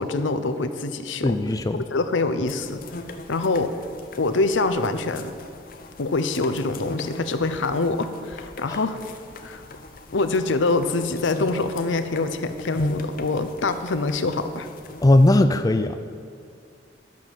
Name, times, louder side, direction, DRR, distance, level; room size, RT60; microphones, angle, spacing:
voice 1, 0.0-1.4 1.7-2.8 3.3-3.8 4.2-5.3 6.0-9.0 9.4-9.6 10.1-14.7, left 3 dB, 85° left, 10 dB, 0.7 m, -25 dB
voice 2, 1.2-1.8 8.7-8.8 15.0-16.1, left 1 dB, 20° left, 8 dB, 0.4 m, -18 dB
sound 1, 2.4-15.4, left 2 dB, 50° left, 0.8 m, -38 dB
11.5 x 6.1 x 7.3 m, 2.3 s
head